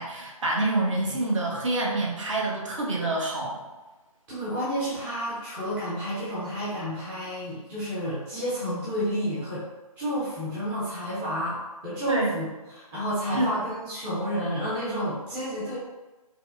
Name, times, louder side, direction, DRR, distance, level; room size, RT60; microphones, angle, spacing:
voice 1, 0.0-3.6 12.1-12.3 13.3-13.5, right 2 dB, 55° right, -2 dB, 1.0 m, -27 dB
voice 2, 4.3-9.6 10.0-15.8, equal, 10° right, -11 dB, 0.5 m, -30 dB
4.6 x 2.0 x 2.5 m, 1.2 s
figure-of-eight pair, 150°, 19 cm